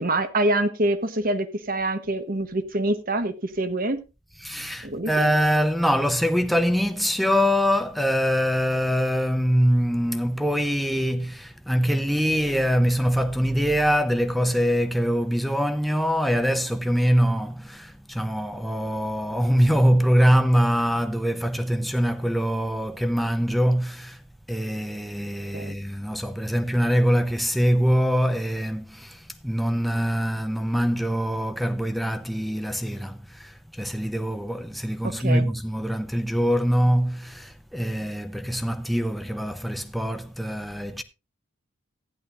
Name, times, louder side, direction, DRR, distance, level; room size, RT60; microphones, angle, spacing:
voice 1, 0.0-4.0 4.8-5.3 25.5-25.8 35.0-35.5, right 1 dB, 40° right, 1.0 m, -25 dB
voice 2, 4.4-24.2 24.5-41.0, equal, ahead, 0.7 m, -23 dB
15.0 x 10.5 x 2.5 m
head